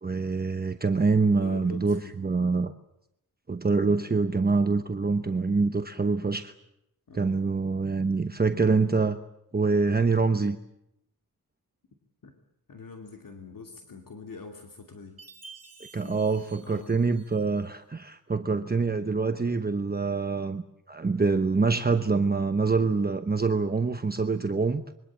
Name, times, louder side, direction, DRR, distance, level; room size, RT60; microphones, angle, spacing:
voice 1, 0.0-2.7 3.5-6.5 7.1-9.2 9.5-10.6 15.9-20.6 20.9-24.9, right 4 dB, 25° right, 7 dB, 1.0 m, -25 dB
voice 2, 1.4-2.3 7.1-7.4 12.2-12.3 12.7-15.2 16.0-17.1, left 4 dB, 65° left, 3 dB, 2.9 m, -44 dB
Chime, 15.2-17.7, right 4 dB, 45° right, 3.0 m, -51 dB
26.0 x 23.0 x 7.6 m, 0.81 s
wide cardioid pair, 130°, 36 cm